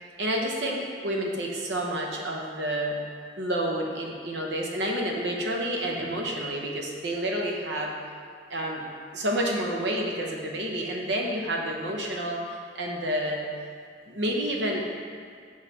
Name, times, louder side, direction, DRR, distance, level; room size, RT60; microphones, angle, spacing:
voice 1, 0.2-3.0 3.4-7.9 8.5-8.8 9.1-12.4 12.7-13.5 14.1-14.8, right 1 dB, 75° right, 0 dB, 0.8 m, -29 dB
6.3 x 3.2 x 5.4 m, 2.2 s
head